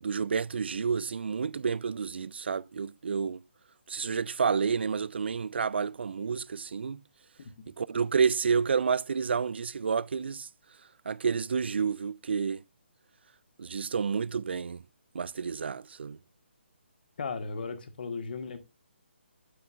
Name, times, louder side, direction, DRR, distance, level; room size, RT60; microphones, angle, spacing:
voice 1, 0.0-3.4 3.9-7.0 7.8-10.5 11.1-12.6 13.6-14.8 15.1-16.2, right 6 dB, 60° right, 0.3 m, -30 dB
voice 2, 17.2-18.6, left 4 dB, 50° left, 1.3 m, -36 dB
9.4 x 8.1 x 2.4 m
figure-of-eight pair, 140°, 6 cm